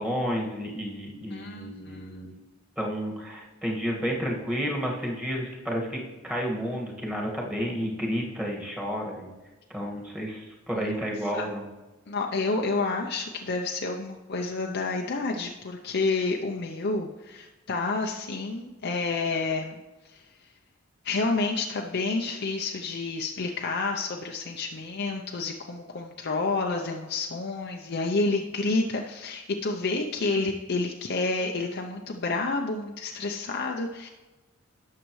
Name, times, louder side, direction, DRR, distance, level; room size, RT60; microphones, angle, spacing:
voice 1, 0.0-2.4 2.8-6.0 6.2-9.3 9.7-11.7, equal, 5° right, -2 dB, 1.8 m, -31 dB
voice 2, 1.3-2.1 10.7-11.0 11.3-11.4 12.1-19.8 20.1-20.2 21.0-34.1, left 3 dB, 55° left, 1 dB, 0.7 m, -29 dB
17.5 x 6.6 x 3.2 m, 1.1 s
head